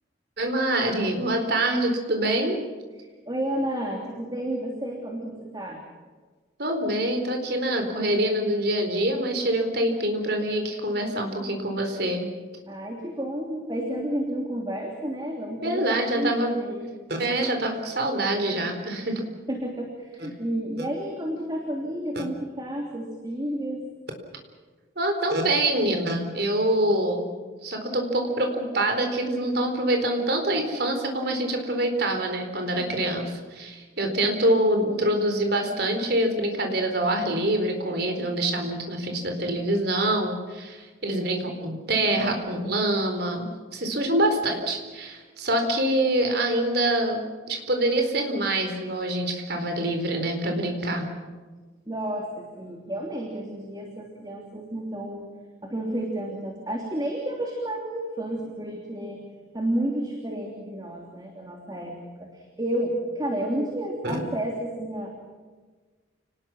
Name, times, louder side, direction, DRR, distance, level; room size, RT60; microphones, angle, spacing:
voice 1, 0.4-2.6 6.6-12.2 15.6-16.5 17.1-19.2 25.0-27.3 27.6-43.4 43.7-47.2 47.5-51.1 64.0-64.2, right 1 dB, 55° right, 4 dB, 4.3 m, -25 dB
voice 2, 3.3-5.8 12.7-16.9 19.5-23.8 51.9-55.3 55.6-59.2 59.5-65.1, right 1 dB, 20° right, 0 dB, 3.1 m, -31 dB
29.5 x 19.5 x 6.4 m, 1.4 s
head